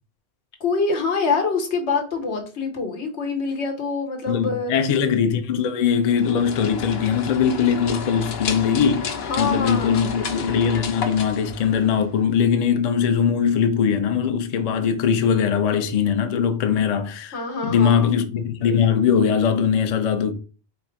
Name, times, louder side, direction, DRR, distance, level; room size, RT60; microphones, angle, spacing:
voice 1, 0.6-4.7 9.1-10.0 17.3-18.0, left 4 dB, 85° left, 1.3 m, -25 dB
voice 2, 4.3-9.1 9.4-17.4 17.6-20.3, left 7 dB, 45° left, 0.5 m, -21 dB
sound 1, 6.1-12.2, left 5 dB, 70° left, 0.9 m, -32 dB
4.1 x 2.5 x 4.4 m
omnidirectional pair, 1.1 m